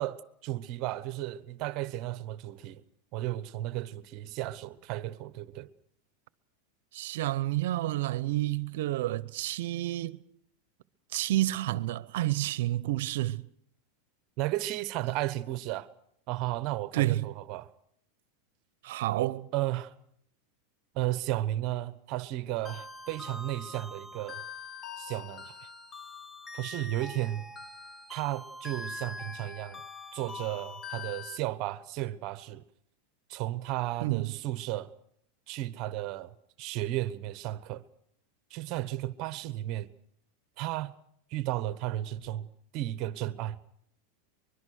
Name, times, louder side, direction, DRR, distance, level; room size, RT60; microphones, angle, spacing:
voice 1, 0.0-2.8 3.1-5.7 14.4-15.9 16.3-17.7 19.5-19.9 20.9-24.4 25.0-25.7 26.5-27.5 28.1-29.8 30.1-32.6 33.3-34.9 35.5-37.8 38.5-39.9 40.6-40.9 41.3-42.5 42.7-43.6, right 15 dB, 50° right, 1.0 m, -34 dB
voice 2, 6.9-10.2 11.1-13.5 16.9-17.3 18.8-19.5 34.0-34.3, right 16 dB, 75° right, 0.8 m, -29 dB
sound 1, 22.6-31.4, left 3 dB, 20° left, 1.1 m, -43 dB
24.0 x 22.0 x 6.5 m
supercardioid pair, 135°, 0 cm